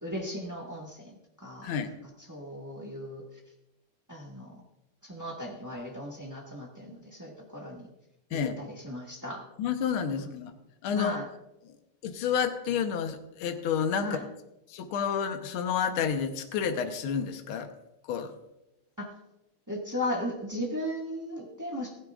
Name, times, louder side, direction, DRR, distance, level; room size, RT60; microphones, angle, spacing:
voice 1, 0.0-1.9 2.3-3.2 4.1-4.6 5.0-7.9 8.3-9.4 10.1-10.3 10.9-11.3 14.0-14.2 19.0-19.1 19.7-22.1, left 1 dB, 15° right, -1 dB, 0.6 m, -37 dB
voice 2, 1.6-1.9 8.3-8.6 9.6-10.5 10.8-11.2 11.6-11.7 12.0-14.2 14.7-17.7 18.1-18.3, left 7 dB, 70° left, 7 dB, 1.3 m, -30 dB
16.0 x 15.5 x 2.5 m, 0.91 s
omnidirectional pair, 3.7 m